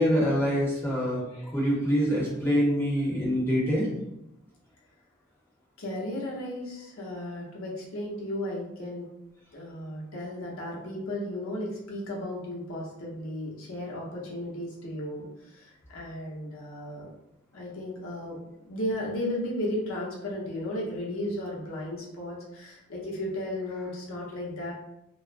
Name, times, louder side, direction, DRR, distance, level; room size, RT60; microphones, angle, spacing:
voice 1, 0.0-3.9, equal, 10° left, -7 dB, 0.7 m, -25 dB
voice 2, 5.8-9.0 9.5-17.1 17.5-24.7, left 1 dB, 75° left, -4 dB, 0.8 m, -35 dB
2.4 x 2.1 x 2.4 m, 0.85 s
head